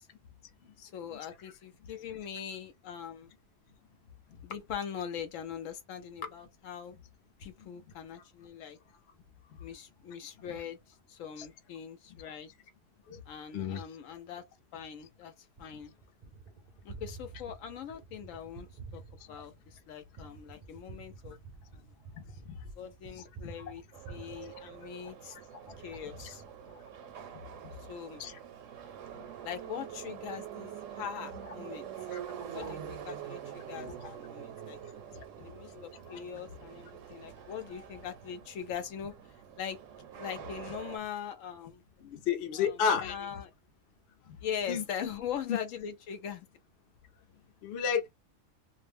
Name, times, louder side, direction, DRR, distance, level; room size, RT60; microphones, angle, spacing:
voice 1, 0.8-3.3 4.4-7.0 7.4-8.8 9.6-12.5 13.3-14.4 14.7-15.9 16.8-18.7 18.9-19.0 19.3-21.4 21.7-21.8 22.8-23.8 24.1-25.4 25.8-26.4 27.9-28.2 29.4-31.9 32.5-34.8 35.4-39.1 39.6-39.8 40.1-41.8 42.5-43.5 44.4-46.5, left 8 dB, 85° left, 1.0 m, -41 dB
Gunshot gunfire, 15.6-25.2 25.7-27.1, right 4 dB, 45° right, 0.5 m, -50 dB
voice 2, 22.1-22.6 28.2-28.4 32.1-32.2 32.6-32.7 36.1-36.2 42.0-43.2 44.7-45.1 45.5-45.6 47.6-48.1, left 7 dB, 60° left, 0.8 m, -32 dB
Subway metro underground, 23.9-41.0, right 9 dB, 80° right, 1.0 m, -45 dB
2.5 x 2.0 x 3.3 m
omnidirectional pair, 1.3 m